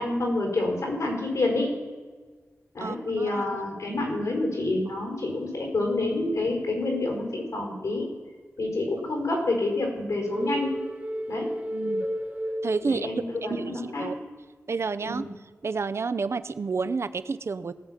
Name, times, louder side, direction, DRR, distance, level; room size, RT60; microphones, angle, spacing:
voice 1, 0.0-1.7 2.7-8.1 8.6-10.8 11.3-11.5 12.8-14.2 15.0-15.3, left 2 dB, 80° left, 0 dB, 4.4 m, -28 dB
voice 2, 2.8-3.6 11.7-12.1 12.6-13.1 13.4-14.2 14.7-15.2 15.6-17.7, right 4 dB, 55° right, 13 dB, 0.5 m, -30 dB
sound 1, 10.3-13.4, equal, 30° right, 1.3 m, -32 dB
18.0 x 7.6 x 5.7 m, 1.4 s
wide cardioid pair, 90°, 5 cm